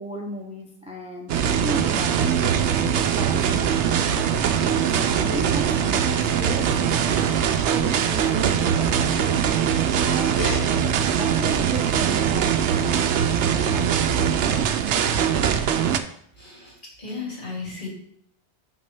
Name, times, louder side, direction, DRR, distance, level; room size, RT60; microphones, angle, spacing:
voice 1, 0.0-4.0 4.8-7.2 7.7-9.4 9.9-10.3 10.7-10.9 11.1-14.7, right 1 dB, 5° right, -1 dB, 0.8 m, -35 dB
sound 1, 1.3-16.0, right 8 dB, 85° right, 0.9 m, -22 dB
sound 2, 3.2-10.6, left 1 dB, 65° left, 2.6 m, -38 dB
voice 2, 16.4-16.7 17.0-17.9, left 4 dB, 45° left, -4 dB, 3.0 m, -34 dB
6.1 x 6.1 x 4.5 m, 0.67 s
omnidirectional pair, 1.2 m